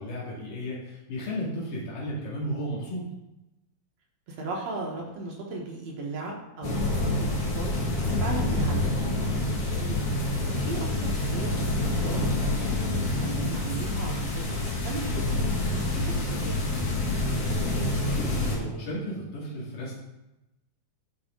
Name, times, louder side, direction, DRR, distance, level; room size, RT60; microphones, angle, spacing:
voice 1, 0.0-3.1 18.1-19.9, equal, 80° left, -5 dB, 3.8 m, -34 dB
voice 2, 4.3-7.8 8.2-9.3 9.8-10.0 10.7-11.5 11.8-14.4 14.7-16.5, right 2 dB, 60° right, -2 dB, 2.3 m, -36 dB
sound 1, 6.6-18.6, left 2 dB, 65° left, 3.4 m, -27 dB
10.5 x 5.6 x 3.7 m, 0.94 s
omnidirectional pair, 3.7 m